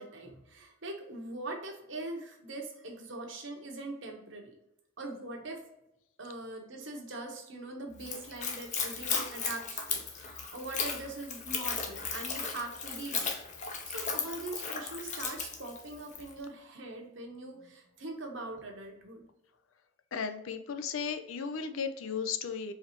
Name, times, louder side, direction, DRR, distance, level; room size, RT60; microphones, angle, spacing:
voice 1, 0.0-4.5 5.0-5.6 6.2-19.3, right 2 dB, 65° right, 2 dB, 1.0 m, -42 dB
Splash splatter / Trickle dribble, 8.0-16.3, left 5 dB, 35° left, 0.6 m, -36 dB
voice 2, 20.1-22.7, left 6 dB, 75° left, 9 dB, 0.5 m, -35 dB
4.6 x 3.3 x 2.9 m, 0.84 s
head